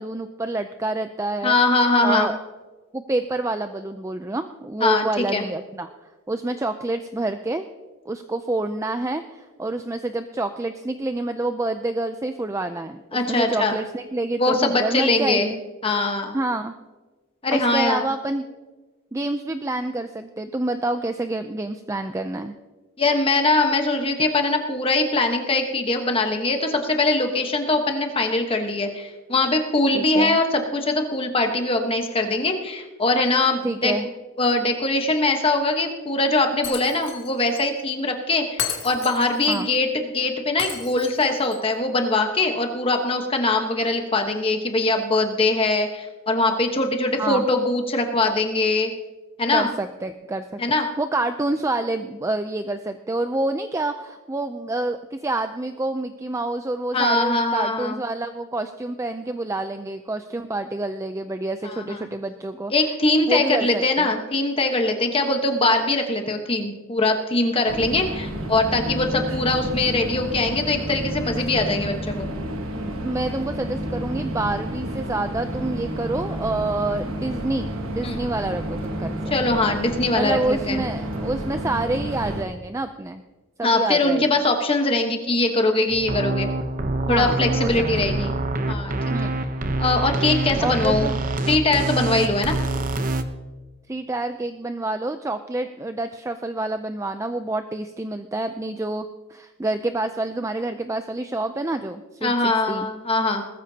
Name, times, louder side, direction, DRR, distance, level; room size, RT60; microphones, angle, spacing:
voice 1, 0.0-1.5 2.0-2.4 2.9-5.9 6.3-7.7 8.1-15.6 16.3-16.7 17.5-18.5 19.1-22.5 29.9-30.4 33.6-34.1 39.5-39.7 47.2-47.5 49.5-50.6 51.0-62.7 63.3-64.1 72.7-79.2 80.1-83.2 83.6-84.2 87.1-88.5 89.1-89.4 90.6-91.1 93.9-102.9, right 2 dB, 15° right, 8 dB, 0.4 m, -27 dB
voice 2, 1.4-2.3 4.8-5.4 13.1-13.8 14.4-15.5 15.8-16.3 17.4-18.1 23.0-33.9 34.4-48.9 49.4-49.7 50.6-50.9 56.9-58.0 61.6-62.0 62.7-72.3 78.0-78.2 79.3-80.8 83.6-86.5 87.1-88.3 88.7-88.9 89.2-89.3 89.8-91.1 91.5-92.6 102.2-103.4, left 2 dB, 25° left, 4 dB, 1.1 m, -22 dB
Shatter, 36.6-37.3 37.5-37.6 38.6-39.6 40.6-41.6, left 8 dB, 60° left, 1.9 m, -32 dB
sound 1, 67.7-82.4, right 1 dB, 70° right, 1.3 m, -30 dB
sound 2, 85.9-93.2, right 2 dB, 40° right, 0.8 m, -26 dB
20.0 x 14.0 x 2.8 m, 1.3 s
head